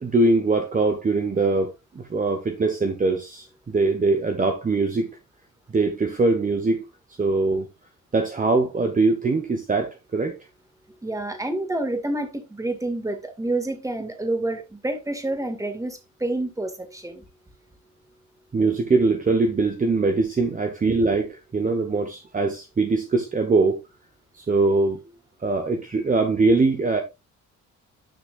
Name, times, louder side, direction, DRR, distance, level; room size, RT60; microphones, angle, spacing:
voice 1, 0.0-5.1 5.7-6.9 7.2-7.7 8.1-10.4 18.5-23.8 24.3-25.0 25.4-27.0, right 3 dB, 25° right, 1.2 m, -22 dB
voice 2, 11.0-17.2, right 2 dB, 10° right, 2.0 m, -28 dB
10.5 x 6.1 x 2.5 m
cardioid pair, 90°, 30 cm